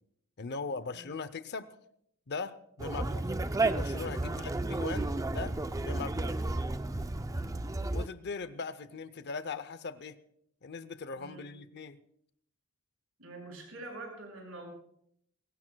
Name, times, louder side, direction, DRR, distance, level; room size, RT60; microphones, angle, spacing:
voice 1, 0.4-1.7 2.3-3.3 3.7-6.4 7.9-10.2 10.6-12.0, left 4 dB, 55° left, 13 dB, 0.6 m, -40 dB
Conversation, 2.8-8.1, right 2 dB, 15° right, 0.4 m, -32 dB
voice 2, 7.3-7.7 11.1-11.4 13.2-14.7, right 2 dB, 75° right, 0 dB, 6.2 m, -46 dB
22.5 x 18.0 x 2.3 m, 0.71 s
head